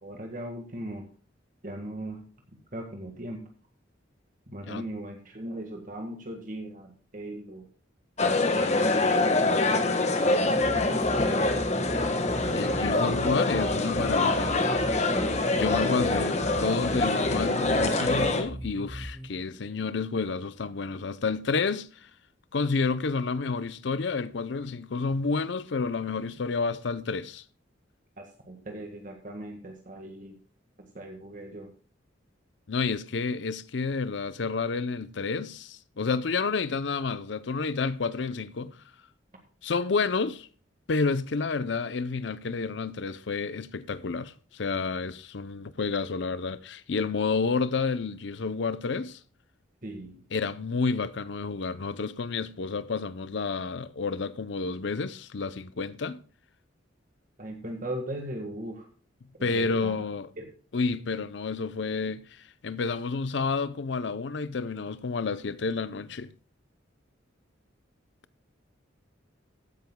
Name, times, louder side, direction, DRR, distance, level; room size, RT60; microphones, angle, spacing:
voice 1, 0.0-1.0 1.6-2.2 2.7-3.4 4.5-7.6 8.9-10.0 10.6-11.6 28.2-30.4 30.8-31.7 49.8-50.1 57.4-58.9 59.4-60.0 60.4-60.5, right 1 dB, 45° right, 1.6 m, -39 dB
sound 1, 8.2-18.4, left 2 dB, 35° left, 1.4 m, -25 dB
sound 2, 10.5-19.3, equal, 10° right, 1.0 m, -39 dB
voice 2, 12.5-14.6 15.5-22.1 22.5-27.4 32.7-38.8 39.6-40.5 40.9-49.2 50.3-56.2 59.4-60.3 60.7-66.3, left 4 dB, 65° left, 0.6 m, -30 dB
15.0 x 10.5 x 2.2 m
head